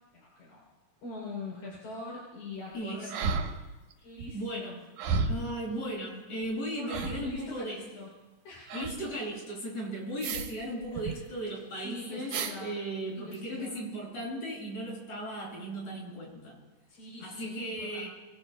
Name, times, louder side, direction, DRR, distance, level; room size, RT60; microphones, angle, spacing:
voice 1, 0.1-0.6 1.0-3.2 4.0-4.8 6.7-8.1 8.4-8.7 10.9-11.5 11.8-12.8 13.1-13.7 16.9-18.1, left 2 dB, 75° left, -3 dB, 4.8 m, -43 dB
voice 2, 2.7-3.4 4.3-4.8 5.3-7.8 8.7-16.6 17.2-18.1, right 1 dB, 55° left, -4 dB, 7.8 m, -36 dB
sound 1, 3.1-3.9 4.2-4.3 5.0-5.5 6.4-6.5 6.9-7.4 8.7-9.0 10.2-10.6 10.8-11.1 12.3-12.6 13.3-13.4, right 4 dB, 80° right, 2.6 m, -32 dB
26.5 x 21.5 x 2.2 m, 1.2 s
omnidirectional pair, 3.6 m